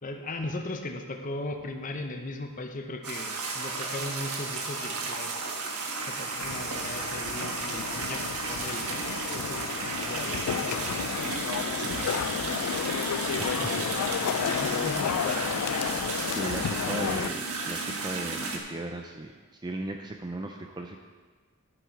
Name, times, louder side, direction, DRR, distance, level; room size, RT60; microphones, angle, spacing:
voice 1, 0.0-5.4 6.1-11.3 11.8-12.4 13.3-15.6, left 2 dB, 35° left, 4 dB, 0.9 m, -38 dB
sound 1, 3.0-18.6, right 3 dB, 90° right, 1.4 m, -33 dB
sound 2, 6.4-17.3, left 8 dB, 90° left, 0.3 m, -32 dB
voice 2, 13.4-13.8 16.2-21.0, right 2 dB, 20° right, 3 dB, 0.5 m, -37 dB
11.5 x 7.8 x 4.6 m, 1.4 s
head